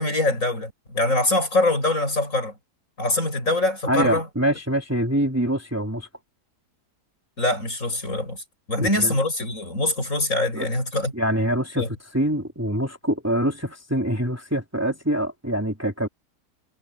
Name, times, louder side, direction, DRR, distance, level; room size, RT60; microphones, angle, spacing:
voice 1, 0.0-2.5 3.0-4.3 7.4-8.4 8.7-11.1 11.8-11.9, left 2 dB, 50° left, 7.9 m, -23 dB
voice 2, 3.8-6.1 8.8-9.1 10.5-10.7 11.1-11.8 12.1-16.1, right 1 dB, 10° right, 3.3 m, -24 dB
omnidirectional pair, 1.8 m